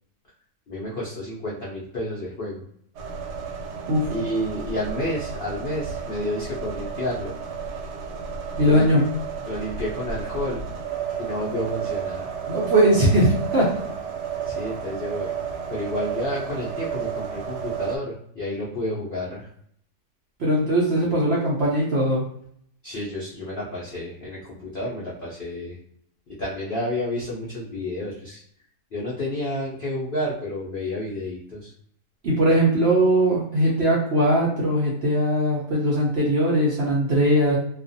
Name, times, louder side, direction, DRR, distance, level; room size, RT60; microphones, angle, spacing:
voice 1, 0.7-2.6 4.1-7.3 8.6-8.9 9.5-10.6 11.2-12.3 14.4-15.3 15.7-19.5 22.8-25.8 26.4-28.4 28.9-31.7, left 1 dB, 55° left, -6 dB, 0.6 m, -30 dB
sound 1, 2.9-18.0, right 7 dB, 90° right, 1.2 m, -32 dB
voice 2, 8.6-9.0 12.5-13.7 20.4-22.2 32.2-37.6, right 1 dB, 60° right, -4 dB, 0.7 m, -20 dB
2.4 x 2.4 x 2.6 m, 0.66 s
omnidirectional pair, 1.7 m